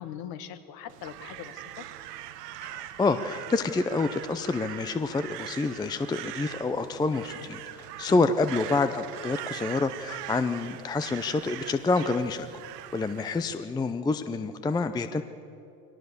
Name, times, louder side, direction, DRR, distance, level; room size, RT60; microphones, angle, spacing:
voice 1, 0.0-1.9 8.1-8.3, left 10 dB, 50° left, 10 dB, 1.6 m, -41 dB
Crow, 0.9-13.6, right 13 dB, 70° right, 1.3 m, -42 dB
voice 2, 2.6-12.5 12.9-15.2, left 3 dB, 10° left, 10 dB, 0.5 m, -28 dB
23.0 x 18.0 x 6.8 m, 2.7 s
hypercardioid pair, 95°, 49 cm